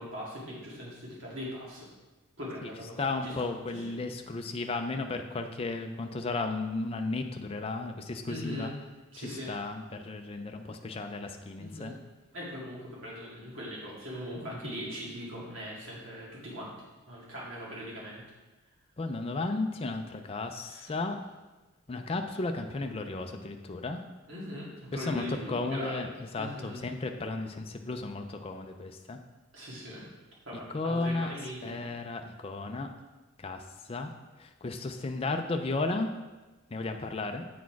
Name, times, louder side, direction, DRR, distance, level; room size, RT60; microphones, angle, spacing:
voice 1, 0.0-1.9 2.4-3.3 3.7-3.9 8.3-8.7 9.1-9.5 11.6-12.0 12.3-16.7 17.1-18.2 20.7-20.9 24.3-26.1 26.4-26.8 29.5-30.1 30.5-31.9, equal, 60° right, -5 dB, 2.1 m, -40 dB
voice 2, 3.0-8.7 9.2-11.9 19.0-21.2 21.9-24.0 24.9-29.2 30.7-31.3 31.6-32.9 33.4-34.1 34.4-36.1 36.7-37.5, left 3 dB, 25° left, 5 dB, 0.4 m, -34 dB
8.3 x 4.2 x 4.6 m, 1.2 s
head